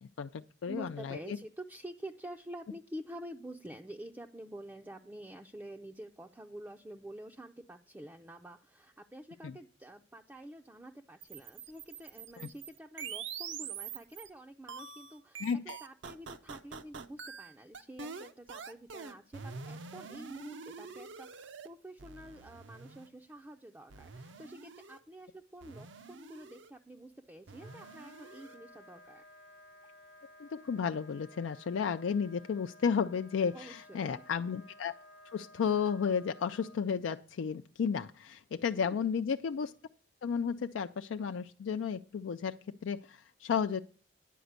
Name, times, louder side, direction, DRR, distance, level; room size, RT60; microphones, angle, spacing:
voice 1, 0.0-1.4 9.4-9.5 12.4-12.5 15.4-15.8 30.4-34.9 35.3-39.7 40.2-43.8, left 6 dB, 85° left, 8 dB, 0.4 m, -33 dB
voice 2, 0.6-15.5 15.8-29.2 33.5-34.2 38.7-39.0, right 1 dB, 10° right, 2 dB, 0.4 m, -48 dB
sound 1, 11.2-14.3 14.7-21.7 22.0-23.1 23.9-25.0 25.6-26.7 27.5-28.6, right 5 dB, 75° right, 0.7 m, -45 dB
Wind instrument woodwind instrument, 27.5-36.8, left 1 dB, 65° left, 1.0 m, -56 dB
10.0 x 5.0 x 8.0 m, 0.42 s
head